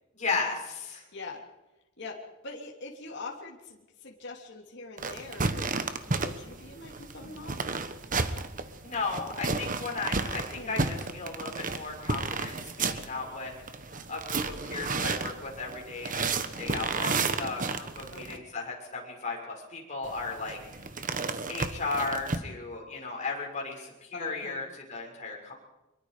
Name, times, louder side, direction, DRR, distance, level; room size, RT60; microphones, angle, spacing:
voice 1, 0.1-1.0 8.8-13.5 14.1-20.6 21.5-25.5, left 3 dB, 40° left, -1 dB, 6.5 m, -35 dB
voice 2, 1.1-1.4 2.0-7.6 10.5-10.7 18.1-18.4 24.1-24.6, left 3 dB, 60° left, 0 dB, 3.2 m, -43 dB
sound 1, 5.0-18.4 20.0-22.4, right 4 dB, 40° right, 1.3 m, -32 dB
25.0 x 22.5 x 5.1 m, 1.0 s
head